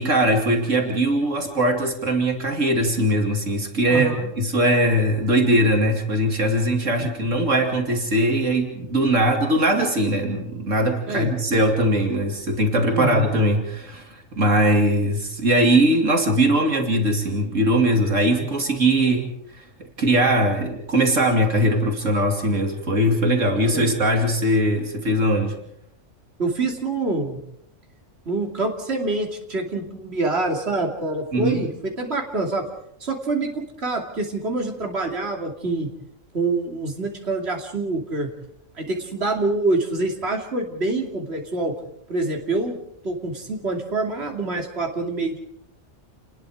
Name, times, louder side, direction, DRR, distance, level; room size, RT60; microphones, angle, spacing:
voice 1, 0.0-25.6 31.3-31.6, right 1 dB, 80° right, 3 dB, 3.0 m, -21 dB
voice 2, 3.9-4.3 7.0-7.1 11.1-11.3 12.9-13.4 23.7-24.0 26.4-27.4 28.3-32.6 33.0-35.9 36.3-38.3 38.7-41.7 42.1-42.8 43.0-45.4, right 2 dB, 55° right, 1 dB, 3.1 m, -26 dB
29.0 x 20.5 x 5.0 m, 0.74 s
omnidirectional pair, 1.3 m